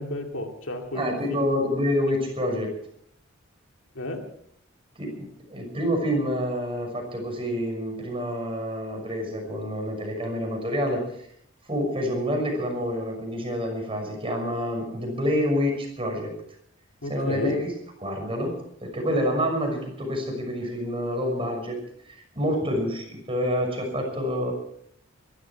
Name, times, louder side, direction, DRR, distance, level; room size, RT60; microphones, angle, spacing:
voice 1, 0.0-1.4 3.9-4.3 17.0-17.6, left 1 dB, 70° left, 3 dB, 2.6 m, -32 dB
voice 2, 0.9-2.8 5.0-11.0 11.7-16.3 17.1-17.7 18.0-21.8 22.1-24.5, equal, 25° right, 2 dB, 6.0 m, -27 dB
23.0 x 13.0 x 4.6 m, 0.68 s
head